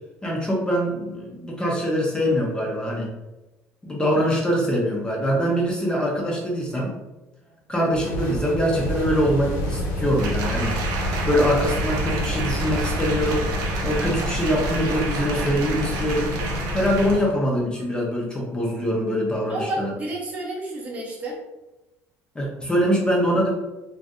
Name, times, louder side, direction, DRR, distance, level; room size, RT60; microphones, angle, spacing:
voice 1, 0.2-3.1 3.8-6.9 7.7-10.7 11.2-13.5 13.8-16.3 16.7-19.9 22.3-23.5, equal, 15° left, -2 dB, 0.6 m, -23 dB
sound 1, 7.9-17.3, left 1 dB, 75° left, 0.9 m, -28 dB
Applause, 10.2-17.3 17.7-17.8, right 4 dB, 80° right, 0.6 m, -32 dB
voice 2, 19.5-21.4 22.4-22.5, right 1 dB, 20° right, -3 dB, 0.7 m, -31 dB
2.6 x 2.5 x 3.5 m, 1.0 s
cardioid pair, 140°, 6 cm